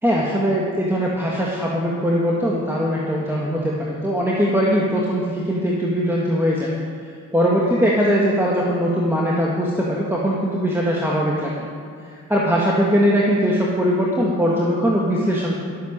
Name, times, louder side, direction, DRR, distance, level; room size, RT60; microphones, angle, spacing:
voice 1, 0.0-6.7 7.3-11.7 12.1-15.6, equal, 10° right, -5 dB, 1.9 m, -20 dB
13.0 x 8.0 x 6.8 m, 2.3 s
cardioid pair, 90°, 30 cm